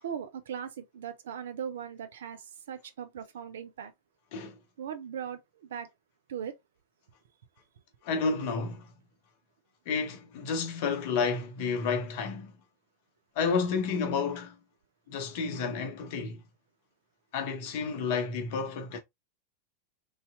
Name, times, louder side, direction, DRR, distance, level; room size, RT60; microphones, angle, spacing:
voice 1, 0.0-3.9 4.8-5.9 6.3-6.5, right 8 dB, 60° right, 0.5 m, -39 dB
voice 2, 8.0-8.9 9.9-12.5 13.4-14.6 15.1-16.4 17.3-19.0, left 5 dB, 50° left, 0.7 m, -31 dB
3.2 x 2.7 x 2.3 m
figure-of-eight pair, 90°, 0 cm